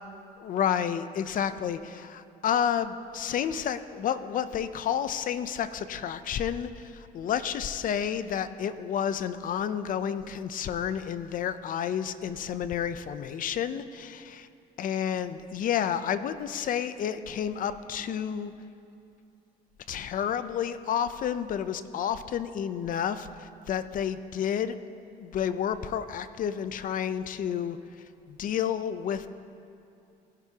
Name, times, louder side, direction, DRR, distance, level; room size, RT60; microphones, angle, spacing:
voice 1, 0.4-14.5 14.8-18.5 19.9-24.7 25.2-27.8 28.3-29.3, left 8 dB, 55° left, 12 dB, 0.6 m, -30 dB
20.0 x 11.0 x 2.9 m, 2.7 s
cardioid pair, 110°, 17 cm